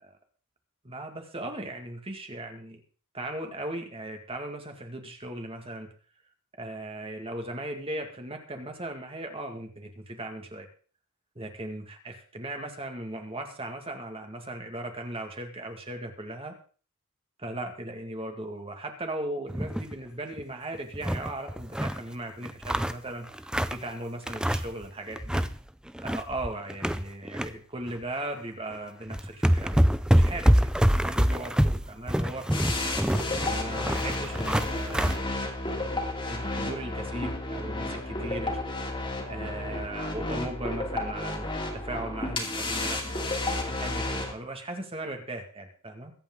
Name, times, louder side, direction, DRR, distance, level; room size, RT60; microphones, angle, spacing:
voice 1, 0.8-2.8 3.1-5.9 6.6-10.7 11.4-16.6 17.4-23.4 23.7-25.5 26.0-29.8 30.1-32.5 33.4-36.0 36.3-38.6 39.3-43.2 43.7-46.1, right 1 dB, 25° right, 4 dB, 2.0 m, -38 dB
sound 1, 19.5-19.9 20.3-20.4 20.7-22.0 22.4-23.9 24.3-24.8 25.1-25.5 25.9-27.5 27.9-28.0 28.7-28.8 29.1-35.2, equal, 5° right, 0.5 m, -25 dB
sound 2, 32.5-44.3, left 2 dB, 25° left, 2.7 m, -32 dB
22.5 x 8.7 x 3.8 m, 0.40 s
head